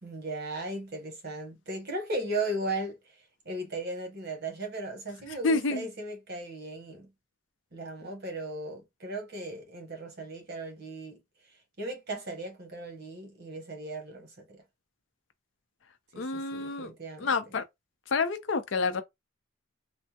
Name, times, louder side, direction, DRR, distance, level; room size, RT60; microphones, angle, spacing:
voice 1, 0.0-3.2 3.4-7.1 7.7-11.2 11.8-14.6 16.1-17.5, right 2 dB, 55° right, 1.0 m, -37 dB
voice 2, 5.4-5.8 16.2-16.9 17.2-17.6 18.1-19.0, left 3 dB, 70° left, 0.6 m, -28 dB
3.3 x 2.1 x 2.8 m
head